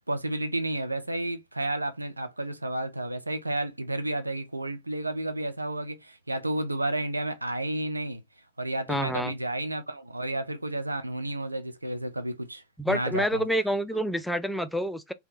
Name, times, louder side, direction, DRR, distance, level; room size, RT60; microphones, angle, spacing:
voice 1, 0.1-8.2 8.6-13.5, right 1 dB, 85° right, 0.4 m, -31 dB
voice 2, 8.9-9.3 12.8-15.1, equal, ahead, 0.4 m, -28 dB
3.4 x 2.2 x 2.6 m
figure-of-eight pair, 90°, 0 cm